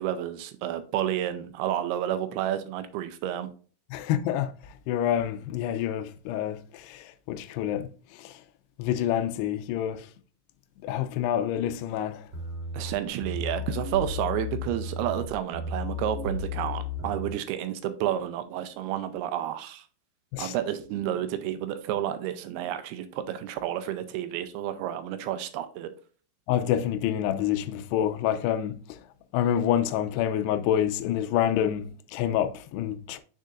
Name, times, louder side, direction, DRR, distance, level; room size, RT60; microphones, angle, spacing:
voice 1, 0.0-3.5 12.7-19.9 20.4-25.9, right 11 dB, 85° right, 2.3 m, -30 dB
voice 2, 3.9-8.4 8.8-10.1 10.8-12.3 20.3-20.6 26.5-29.0 29.3-33.2, left 10 dB, 80° left, 2.5 m, -28 dB
sound 1, 12.3-17.4, left 3 dB, 40° right, 4.0 m, -34 dB
6.6 x 6.5 x 2.5 m
omnidirectional pair, 5.0 m